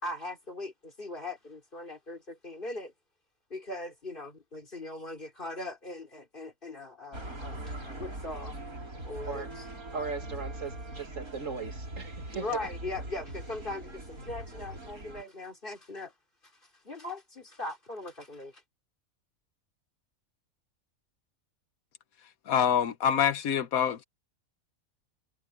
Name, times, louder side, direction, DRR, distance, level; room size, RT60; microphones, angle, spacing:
voice 1, 0.0-2.9 3.5-8.6 9.1-9.5 12.3-16.1 16.8-18.6, left 2 dB, 35° left, 3.7 m, -40 dB
sound 1, 7.1-15.2, right 1 dB, 85° right, 6.4 m, -41 dB
voice 2, 9.9-12.7, right 5 dB, 60° right, 2.5 m, -38 dB
voice 3, 22.5-24.0, left 8 dB, 80° left, 1.4 m, -26 dB
omnidirectional pair, 1.5 m